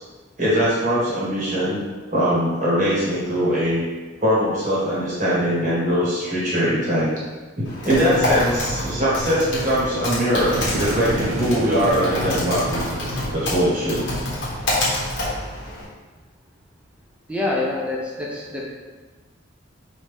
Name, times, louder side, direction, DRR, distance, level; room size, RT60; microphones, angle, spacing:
voice 1, 0.4-1.8 2.1-3.8 4.2-7.1 7.5-12.8 13.3-14.0, equal, 35° right, -8 dB, 1.4 m, -21 dB
Typing, 7.6-15.8, left 1 dB, 55° left, 1.2 m, -27 dB
sound 1, 8.9-14.9, right 2 dB, 70° right, 0.5 m, -33 dB
voice 2, 17.3-18.7, left 2 dB, 5° right, -3 dB, 0.6 m, -26 dB
4.8 x 2.7 x 3.5 m, 1.3 s
head